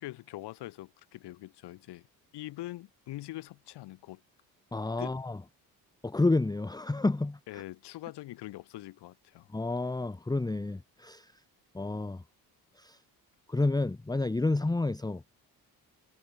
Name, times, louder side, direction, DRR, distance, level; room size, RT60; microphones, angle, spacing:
voice 1, 0.0-2.1 2.3-4.2 5.0-5.2 7.5-9.5, left 16 dB, 80° left, 5.0 m, -43 dB
voice 2, 4.7-5.4 6.0-7.6 9.5-11.3 11.7-12.2 12.8-13.0 13.5-15.2, left 2 dB, 10° left, 0.9 m, -30 dB
supercardioid pair, 70°, 40 cm